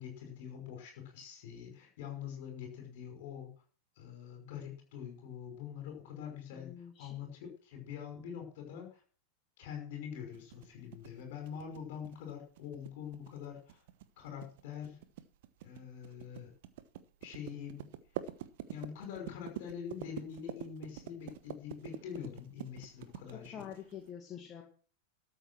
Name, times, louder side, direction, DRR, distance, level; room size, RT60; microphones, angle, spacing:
voice 1, 0.0-3.5 4.0-9.0 9.6-13.8 14.2-15.0 15.6-16.5 17.2-17.9 18.7-23.7, left 8 dB, 50° left, 3 dB, 5.5 m, -45 dB
voice 2, 6.5-7.2 23.5-24.6, left 9 dB, 30° left, 2 dB, 2.1 m, -46 dB
sound 1, 10.3-24.1, right 12 dB, 50° right, 1.1 m, -46 dB
13.0 x 7.8 x 6.3 m, 0.42 s
figure-of-eight pair, 90°, 0 cm